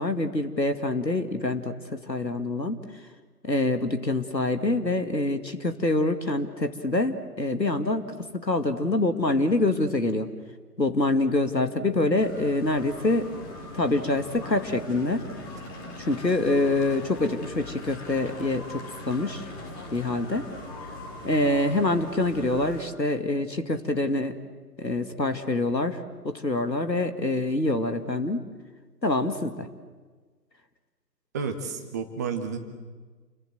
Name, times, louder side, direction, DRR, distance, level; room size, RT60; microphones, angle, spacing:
voice 1, 0.0-2.8 3.4-8.0 8.3-10.3 10.8-13.3 13.7-15.2 16.0-19.5 19.9-20.5 21.2-24.4 24.8-26.0 26.2-28.4 29.0-29.7, left 2 dB, 90° left, 7 dB, 2.4 m, -25 dB
sound 1, 12.2-22.8, left 2 dB, 15° left, 2.7 m, -41 dB
voice 2, 31.3-32.6, right 5 dB, 10° right, 5 dB, 0.9 m, -31 dB
29.0 x 23.0 x 8.0 m, 1.4 s
figure-of-eight pair, 140°, 49 cm